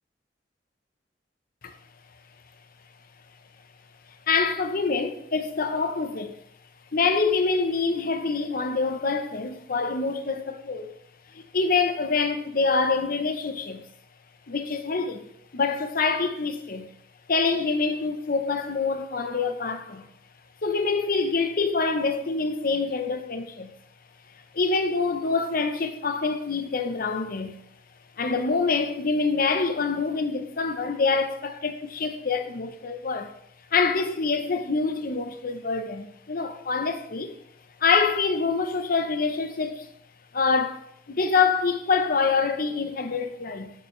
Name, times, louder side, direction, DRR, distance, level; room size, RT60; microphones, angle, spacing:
voice 1, 4.3-6.4 6.9-10.9 11.3-13.8 14.5-16.9 17.3-20.1 20.6-23.7 24.5-27.6 28.2-33.3 33.7-37.4 37.8-39.9 40.3-43.7, left 4 dB, 50° left, 0.8 m, -26 dB
11.0 x 5.8 x 3.2 m
head